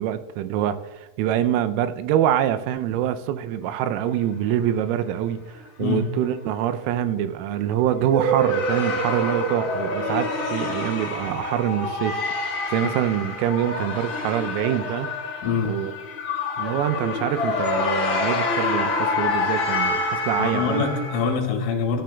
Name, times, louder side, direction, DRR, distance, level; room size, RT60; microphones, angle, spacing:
voice 1, 0.0-15.1 15.7-15.9 16.6-20.9, right 10 dB, 90° right, 10 dB, 3.4 m, -25 dB
sound 1, 8.0-21.3, left 2 dB, 55° left, 1.3 m, -26 dB
voice 2, 15.4-15.8 20.4-22.0, left 5 dB, 75° left, 1 dB, 4.0 m, -24 dB
15.5 x 13.5 x 2.3 m, 1.1 s
omnidirectional pair, 5.9 m